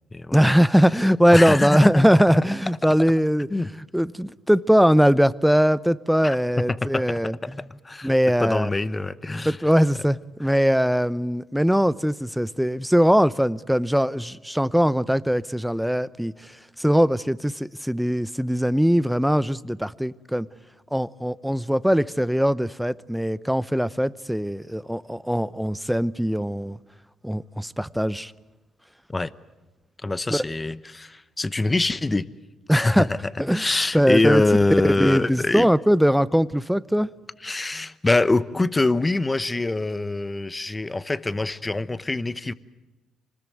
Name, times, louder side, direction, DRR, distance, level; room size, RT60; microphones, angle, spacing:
voice 1, 0.3-3.5 3.9-7.6 8.0-8.7 9.4-16.5 16.8-20.5 20.9-26.8 27.2-28.3 30.3-30.4 32.7-33.1 33.4-33.7 33.9-34.4 34.8-37.1, equal, ahead, 0.7 m, -21 dB
voice 2, 1.3-2.1 3.5-3.7 6.2-6.4 6.7-8.1 8.4-9.6 29.1-29.3 30.0-32.3 32.7-33.2 33.5-35.7 37.4-42.5, left 2 dB, 20° left, 1.0 m, -24 dB
25.5 x 20.0 x 9.3 m
supercardioid pair, 65°, 0 cm